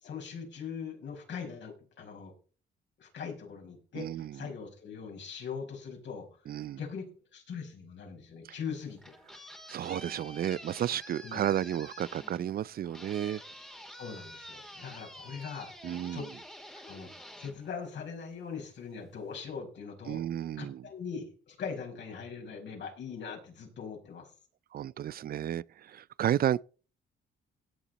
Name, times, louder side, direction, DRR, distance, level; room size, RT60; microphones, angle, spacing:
voice 1, 0.0-2.3 3.0-7.1 7.3-9.0 11.2-11.4 13.9-15.7 16.1-16.3 16.8-17.1 17.4-20.2 20.6-24.3, left 6 dB, 65° left, 5.4 m, -41 dB
voice 2, 4.0-4.4 6.5-6.8 9.7-13.4 15.8-16.2 20.1-20.8 24.7-26.6, right 11 dB, 50° right, 0.4 m, -32 dB
sound 1, 8.8-18.4, equal, 5° left, 2.4 m, -49 dB
17.0 x 7.2 x 4.1 m
cardioid pair, 90°, 20 cm